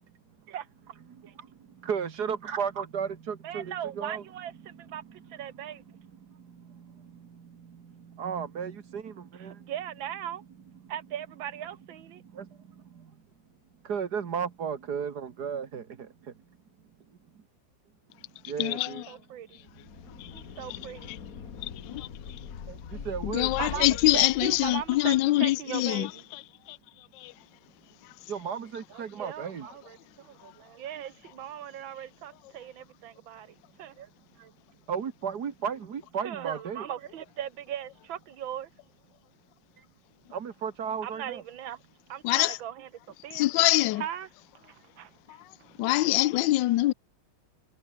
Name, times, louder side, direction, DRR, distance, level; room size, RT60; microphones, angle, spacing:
voice 1, 0.5-1.0 1.2-1.3 3.4-5.8 9.7-10.4 10.9-12.2 18.7-19.6 20.3-21.1 22.7-23.1 23.6-23.9 24.1-26.2 28.9-34.1 34.4-34.5 36.2-38.7 41.0-41.8 42.1-43.6 44.0-44.3 44.6-45.9, right 10 dB, 70° right, 1.7 m, -39 dB
voice 2, 1.8-4.2 8.2-9.1 9.4-9.5 12.4-12.5 13.9-15.8 18.5-19.0 23.1-23.5 28.3-29.7 34.9-36.9 40.3-41.4, right 7 dB, 50° right, 2.0 m, -33 dB
voice 3, 18.6-19.1 21.1-21.2 21.6-22.1 23.2-26.4 26.7-26.8 27.1-27.3 42.2-42.6 43.3-44.0 45.3-45.4 45.8-46.9, left 17 dB, 70° left, 1.2 m, -25 dB
sound 1, 19.6-25.2, left 7 dB, 45° left, 1.7 m, -42 dB
omnidirectional pair, 2.3 m